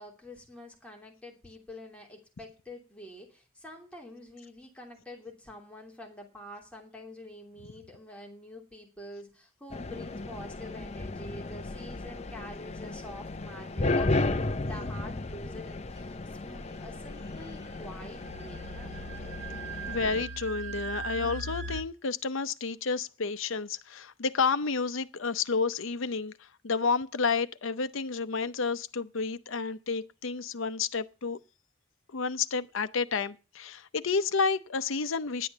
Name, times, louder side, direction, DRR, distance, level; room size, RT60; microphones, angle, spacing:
voice 1, 0.0-19.0, left 1 dB, 5° left, 2.8 m, -47 dB
sound 1, 9.7-20.2, left 2 dB, 35° left, 0.7 m, -34 dB
sound 2, 17.4-21.8, right 3 dB, 55° right, 1.4 m, -39 dB
voice 2, 19.9-31.4 32.1-35.5, left 5 dB, 75° left, 0.7 m, -30 dB
10.5 x 8.5 x 7.2 m
head